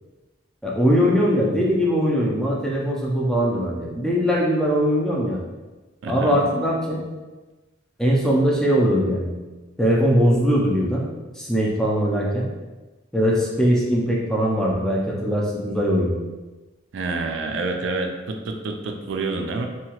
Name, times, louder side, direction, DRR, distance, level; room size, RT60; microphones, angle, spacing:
voice 1, 0.6-5.4 6.1-7.0 8.0-9.3 9.8-11.1 11.4-12.5 13.1-16.2, equal, 5° left, -4 dB, 0.3 m, -21 dB
voice 2, 6.0-6.4 16.9-19.7, right 3 dB, 70° right, 3 dB, 0.3 m, -28 dB
2.8 x 2.3 x 2.8 m, 1.2 s
head